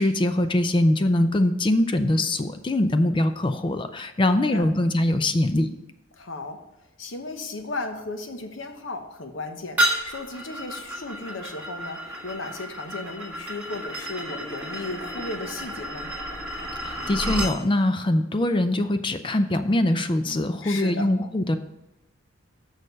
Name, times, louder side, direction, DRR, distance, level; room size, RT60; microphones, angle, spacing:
voice 1, 0.0-5.7 16.8-21.6, left 1 dB, 25° left, 9 dB, 0.4 m, -23 dB
voice 2, 4.2-4.6 6.1-6.6 7.0-16.1 20.6-21.1, left 2 dB, 65° left, 6 dB, 1.0 m, -35 dB
sound 1, 9.8-17.6, right 1 dB, 10° right, 1.6 m, -31 dB
6.5 x 6.4 x 5.3 m, 0.94 s
head